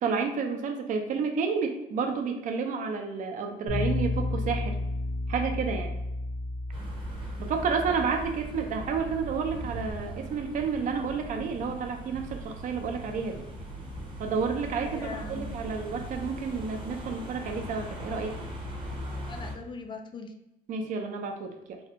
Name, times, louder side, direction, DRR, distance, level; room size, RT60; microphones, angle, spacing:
voice 1, 0.0-4.7 5.3-6.0 7.4-13.4 14.2-18.4 20.7-21.8, right 5 dB, 50° right, 4 dB, 0.5 m, -30 dB
Bass guitar, 3.7-9.9, left 2 dB, 75° left, 0.8 m, -33 dB
sound 1, 6.7-19.5, right 1 dB, 30° right, 0.9 m, -40 dB
voice 2, 14.6-15.6 19.3-20.3, left 4 dB, 30° left, 6 dB, 0.4 m, -41 dB
3.4 x 2.1 x 2.8 m, 0.92 s
cardioid pair, 110°, 17 cm